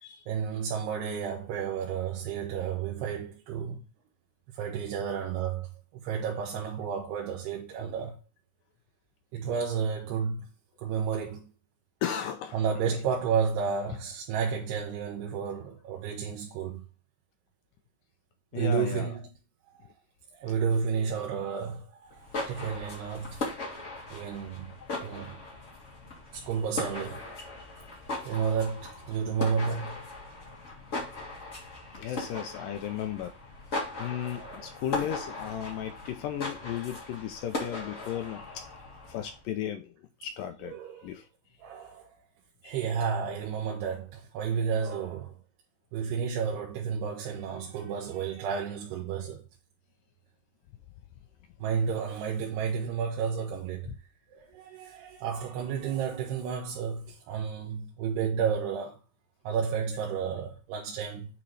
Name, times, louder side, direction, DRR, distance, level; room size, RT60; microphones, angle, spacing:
voice 1, 0.3-3.8 4.5-8.2 9.3-10.5 10.8-11.5 12.5-16.8 18.5-19.3 19.7-19.9 20.3-23.5 24.1-25.4 26.3-27.3 28.2-30.1 32.1-32.2 34.3-34.8 40.6-41.2 41.6-42.1 42.6-45.4 45.9-49.4 51.6-53.9 54.3-59.0 59.4-61.4, right 6 dB, 85° right, 3.1 m, -32 dB
voice 2, 12.0-12.6 18.5-19.1 32.0-33.3 34.0-38.4 39.1-39.9 40.2-40.8 41.0-41.2 42.6-42.8, left 10 dB, 80° left, 2.0 m, -35 dB
sound 1, 22.1-39.4, left 2 dB, 45° left, 0.9 m, -39 dB
8.8 x 4.0 x 3.2 m
omnidirectional pair, 4.6 m